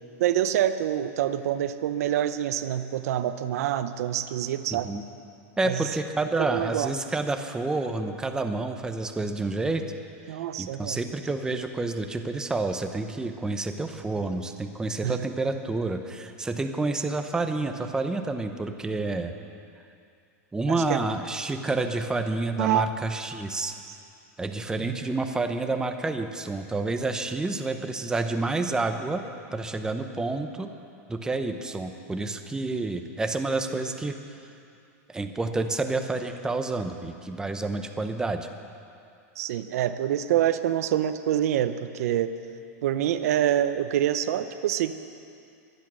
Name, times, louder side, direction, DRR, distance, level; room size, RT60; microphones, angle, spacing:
voice 1, 0.2-4.9 5.6-5.9 6.4-6.9 10.3-11.0 15.0-15.2 20.7-21.0 22.6-22.9 24.8-25.0 39.4-42.3 42.8-44.9, right 11 dB, 75° right, 12 dB, 0.7 m, -26 dB
voice 2, 4.7-5.0 5.6-9.8 10.6-19.3 20.5-23.7 24.4-29.2 29.5-30.7 31.1-34.2 35.1-38.5, right 3 dB, 10° right, 7 dB, 0.8 m, -29 dB
23.5 x 8.4 x 6.2 m, 2.6 s
supercardioid pair, 140°, 8 cm